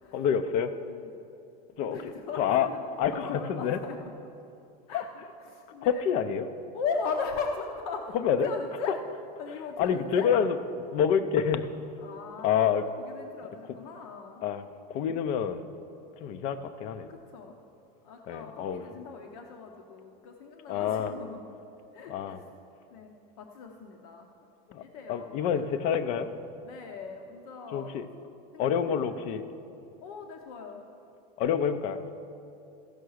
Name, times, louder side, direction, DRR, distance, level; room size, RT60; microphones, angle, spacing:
voice 1, 0.1-0.7 1.8-2.0 2.4-2.7 3.0-3.8 4.9-5.0 5.8-6.5 8.2-8.5 9.8-11.7 12.4-12.8 14.4-14.6 14.9-15.6 16.2-17.1 18.3-18.8 20.7-21.1 22.1-22.4 24.7-24.8 25.1-26.3 27.7-28.1 28.6-29.4 31.4-32.0, left 8 dB, 35° left, 9 dB, 0.4 m, -27 dB
voice 2, 1.8-2.8 3.1-4.1 4.9-6.1 6.7-9.0 9.4-10.3 12.0-14.4 17.1-17.6 18.0-21.5 21.9-22.5 22.9-24.3 24.8-25.7 26.6-28.0 28.5-29.2 30.0-30.8, left 5 dB, 65° left, 3 dB, 0.8 m, -38 dB
14.5 x 5.6 x 6.3 m, 2.7 s
supercardioid pair, 175°, 20 cm